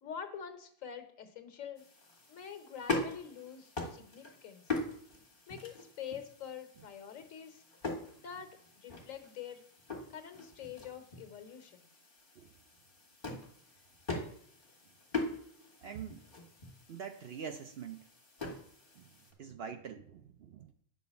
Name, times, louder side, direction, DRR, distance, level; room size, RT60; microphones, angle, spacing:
voice 1, 0.0-1.8 2.3-4.6 5.5-7.6 8.1-9.6 10.1-11.9, left 8 dB, 90° left, 7 dB, 1.5 m, -46 dB
sound 1, 1.8-19.3, left 3 dB, 45° left, 2.0 m, -42 dB
voice 2, 15.8-16.2 16.9-18.0 19.0-19.1 19.4-20.7, right 7 dB, 60° right, 7 dB, 0.8 m, -44 dB
9.4 x 4.1 x 6.9 m, 0.64 s
omnidirectional pair, 1.3 m